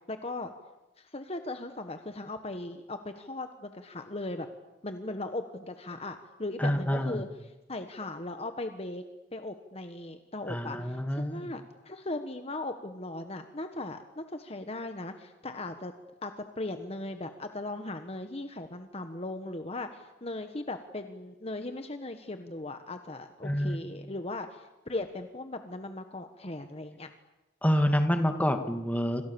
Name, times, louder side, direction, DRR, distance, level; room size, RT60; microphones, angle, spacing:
voice 1, 0.1-0.5 1.0-4.5 4.8-9.0 9.3-15.9 16.2-27.1, left 2 dB, 30° left, 7 dB, 1.5 m, -38 dB
voice 2, 6.6-7.3 10.5-11.5 23.4-23.8 27.6-29.2, equal, 10° left, 6 dB, 2.1 m, -27 dB
28.0 x 26.0 x 7.1 m, 1.0 s
head